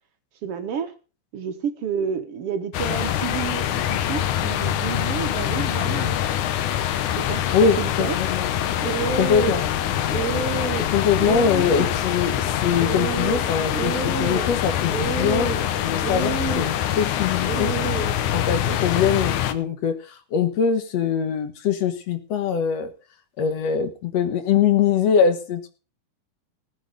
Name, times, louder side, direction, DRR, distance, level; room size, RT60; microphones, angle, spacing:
voice 1, 0.4-0.9 1.3-6.2 7.2-8.2, right 7 dB, 55° right, 7 dB, 1.9 m, -30 dB
sound 1, 2.7-19.5, left 11 dB, 80° left, 2.4 m, -24 dB
voice 2, 7.5-8.5 9.1-9.6 10.8-17.7 18.3-22.9 23.4-25.7, left 7 dB, 60° left, 9 dB, 2.3 m, -23 dB
sound 2, 8.6-18.8, right 6 dB, 25° right, 2.0 m, -31 dB
19.0 x 6.7 x 5.1 m, 0.36 s
omnidirectional pair, 3.6 m